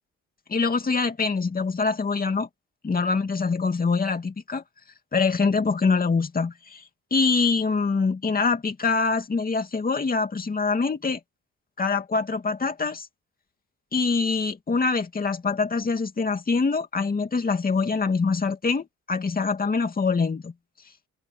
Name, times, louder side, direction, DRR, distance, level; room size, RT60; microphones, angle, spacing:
voice 1, 0.5-2.5 2.8-4.6 5.1-6.8 7.1-11.2 11.8-13.1 13.9-20.5, left 4 dB, 30° left, 2.6 m, -24 dB
open air
cardioid pair, 90°, 30 cm